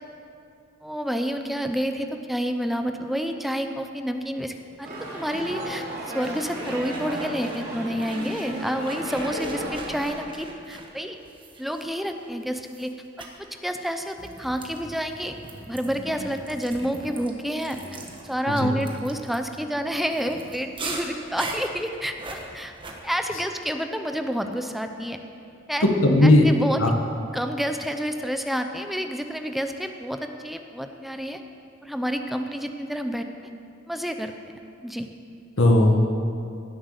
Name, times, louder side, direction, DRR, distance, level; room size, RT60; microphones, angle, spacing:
voice 1, 0.8-5.8 6.1-11.2 11.6-12.9 13.2-15.4 15.7-17.8 18.2-22.7 23.0-25.2 25.7-25.8 26.2-26.8 27.3-31.4 31.8-33.3 33.9-34.3 34.8-35.1, equal, ahead, 6 dB, 0.6 m, -29 dB
sound 1, 4.8-10.0, right 1 dB, 50° right, 3.5 m, -34 dB
sound 2, 6.2-7.7 8.0-12.2 12.6-12.9 13.2-13.4 14.0-22.9, right 2 dB, 25° right, 1.4 m, -40 dB
voice 2, 25.8-26.5 26.8-26.9 35.6-36.0, left 1 dB, 70° left, 2 dB, 1.5 m, -17 dB
16.5 x 7.8 x 6.6 m, 2.5 s
head